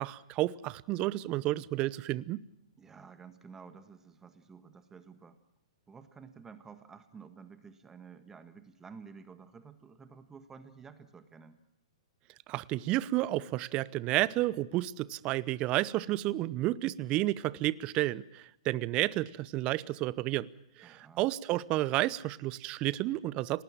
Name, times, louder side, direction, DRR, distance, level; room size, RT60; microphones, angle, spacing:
voice 1, 0.0-2.4 12.5-20.5 20.8-23.6, right 16 dB, 30° right, 0.8 m, -31 dB
voice 2, 2.8-5.4 5.9-11.6 20.8-21.3, right 5 dB, 15° right, 1.7 m, -52 dB
29.0 x 19.0 x 7.5 m
hypercardioid pair, 120°, 3 cm